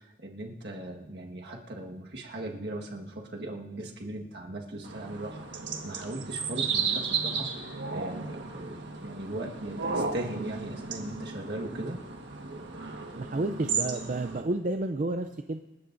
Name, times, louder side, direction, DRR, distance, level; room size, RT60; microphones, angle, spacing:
voice 1, 0.0-12.0, right 1 dB, 65° right, 0 dB, 1.5 m, -39 dB
sound 1, 4.8-14.4, right 5 dB, 85° right, 1.5 m, -34 dB
voice 2, 13.2-15.6, right 2 dB, 45° right, 7 dB, 0.5 m, -31 dB
27.5 x 12.5 x 2.6 m, 1.1 s
head